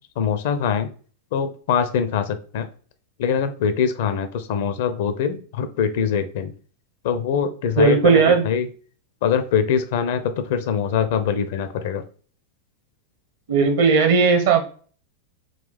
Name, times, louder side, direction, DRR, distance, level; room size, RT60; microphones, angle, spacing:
voice 1, 0.2-0.9 1.3-2.7 3.2-6.5 7.0-8.7 9.2-12.0, left 7 dB, 50° left, 10 dB, 0.4 m, -23 dB
voice 2, 7.8-8.4 13.5-14.7, right 5 dB, 55° right, 5 dB, 0.8 m, -16 dB
3.9 x 2.3 x 3.2 m, 0.41 s
figure-of-eight pair, 90°, 0 cm